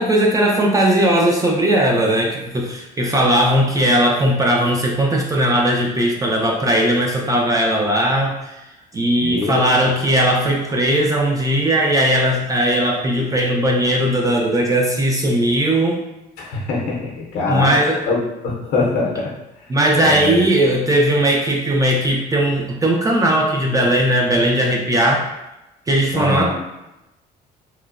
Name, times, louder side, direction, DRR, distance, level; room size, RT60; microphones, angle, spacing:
voice 1, 0.0-8.6 8.9-16.0 17.5-18.0 19.7-25.3 25.9-26.5, right 1 dB, 20° right, -1 dB, 0.3 m, -18 dB
voice 2, 9.2-9.6 16.4-17.8 18.1-19.3 19.6-19.7 20.0-20.5 26.1-26.5, left 3 dB, 70° left, -2 dB, 0.6 m, -23 dB
2.9 x 2.0 x 2.3 m, 0.94 s
cardioid pair, 110°, 17 cm